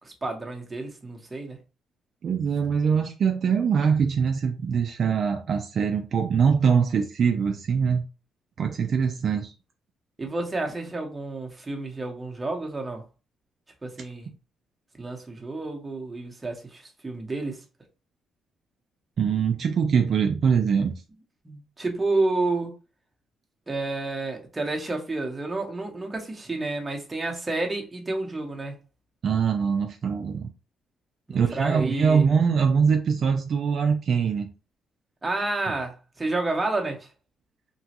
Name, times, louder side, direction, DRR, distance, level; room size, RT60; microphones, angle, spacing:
voice 1, 0.0-1.6 10.2-13.0 13.8-14.3 15.0-17.6 21.4-22.8 23.7-28.7 31.3-32.2 35.2-37.1, right 2 dB, 20° right, 0.9 m, -30 dB
voice 2, 2.2-8.0 8.6-9.5 19.2-21.0 29.2-30.5 31.3-34.5, right 6 dB, 55° right, 0.4 m, -23 dB
3.0 x 2.3 x 2.9 m
cardioid pair, 90°, 0 cm